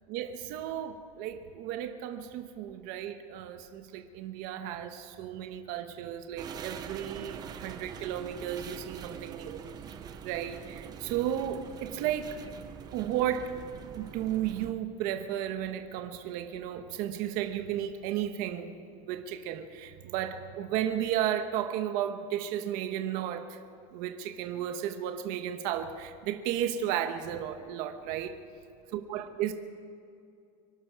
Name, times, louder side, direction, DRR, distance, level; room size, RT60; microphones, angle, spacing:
voice 1, 0.1-9.6 10.2-12.4 12.9-13.5 13.9-18.7 19.1-23.6 23.9-28.4 28.9-29.5, right 10 dB, 45° right, 7 dB, 1.1 m, -34 dB
sound 1, 6.4-14.7, right 7 dB, 20° right, 0.7 m, -44 dB
25.5 x 12.0 x 4.7 m, 2.4 s
supercardioid pair, 175°, 20 cm